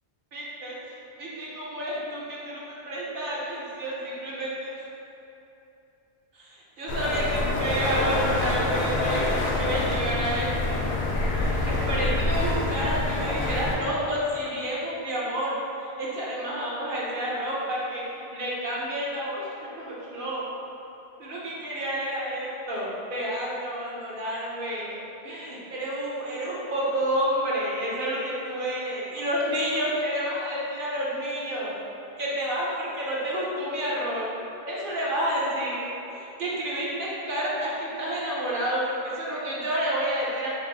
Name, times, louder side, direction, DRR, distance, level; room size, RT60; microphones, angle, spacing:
voice 1, 0.3-4.7 6.3-10.8 11.3-20.4 21.2-25.0 25.2-31.8 32.2-34.3 34.7-40.5, equal, 60° right, -6 dB, 0.9 m, -30 dB
sound 1, 6.9-13.8, left 2 dB, 80° left, 0.8 m, -26 dB
3.3 x 2.5 x 3.9 m, 2.9 s
omnidirectional pair, 1.1 m